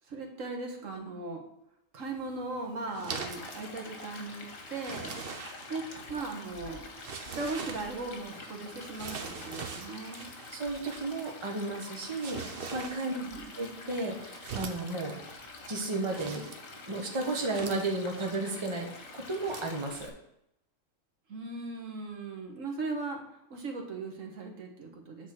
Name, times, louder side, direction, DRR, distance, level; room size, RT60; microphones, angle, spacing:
voice 1, 0.1-1.4 1.9-5.2 5.7-5.8 6.1-6.9 7.3-10.3 13.1-13.5 21.3-23.2 23.5-25.3, right 3 dB, 75° right, 2 dB, 1.6 m, -38 dB
sound 1, 2.1-19.8, right 5 dB, 50° right, 0.9 m, -45 dB
Stream, 3.1-20.1, left 3 dB, 85° left, 1.7 m, -47 dB
voice 2, 10.5-13.1 13.6-15.2 15.7-16.4 16.9-18.9 19.1-20.1, right 2 dB, 25° right, 1 dB, 1.2 m, -33 dB
7.9 x 4.1 x 6.0 m, 0.81 s
omnidirectional pair, 1.4 m